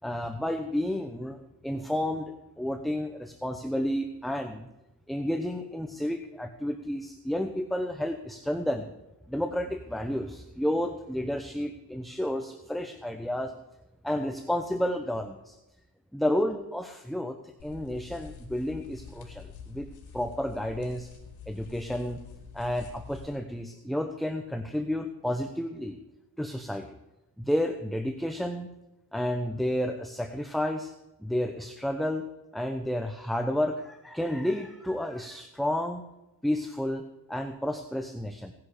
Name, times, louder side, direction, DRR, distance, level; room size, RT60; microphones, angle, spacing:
voice 1, 0.0-1.4 1.6-4.7 5.1-8.9 9.3-13.5 14.0-15.6 16.1-19.9 20.1-21.1 21.5-22.2 22.5-26.0 26.4-27.0 27.4-28.7 29.1-30.9 31.2-32.3 32.5-36.0 36.4-37.0 37.3-38.5, left 1 dB, ahead, 6 dB, 0.8 m, -31 dB
sound 1, 17.6-23.3, left 6 dB, 80° left, 3.1 m, -47 dB
17.5 x 10.5 x 5.0 m, 0.94 s
cardioid pair, 120°, 37 cm